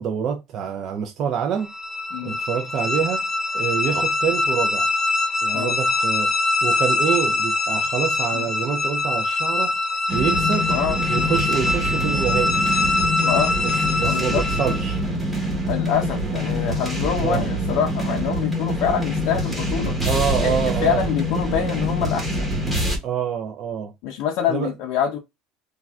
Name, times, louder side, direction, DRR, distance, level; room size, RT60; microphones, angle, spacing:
voice 1, 0.0-1.7 2.2-3.3 3.5-4.9 5.4-6.3 6.6-9.8 10.1-10.7 11.1-12.6 13.6-15.0 17.2-17.4 20.1-21.0 23.0-23.9 24.5-24.7, right 8 dB, 40° right, 0.4 m, -26 dB
sound 1, 1.6-15.0, left 2 dB, 20° left, 0.7 m, -23 dB
sound 2, 10.1-23.0, equal, 5° right, 1.1 m, -25 dB
voice 2, 13.2-13.5 14.0-14.4 15.7-20.0 20.4-22.5 24.0-25.2, left 8 dB, 65° left, 0.6 m, -25 dB
3.3 x 2.3 x 2.3 m
cardioid pair, 145°, 0 cm